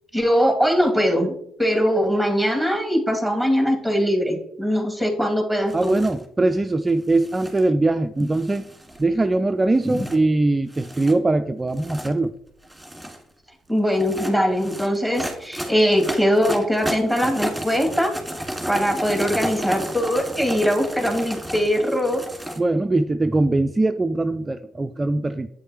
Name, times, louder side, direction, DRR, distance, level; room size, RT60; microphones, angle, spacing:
voice 1, 0.1-5.9 9.8-10.0 13.7-18.2 18.7-22.2, equal, 10° left, 2 dB, 2.4 m, -21 dB
sound 1, 5.7-6.2 7.1-7.6 8.3-9.1 9.8-10.2 10.7-11.1 11.7-12.1 12.6-13.2 13.9-22.6, right 1 dB, 5° right, 1.9 m, -32 dB
voice 2, 5.7-8.6 9.0-12.3 22.6-25.5, right 2 dB, 20° right, 9 dB, 0.4 m, -21 dB
8.2 x 6.4 x 3.0 m, 0.72 s
figure-of-eight pair, 45°, 0 cm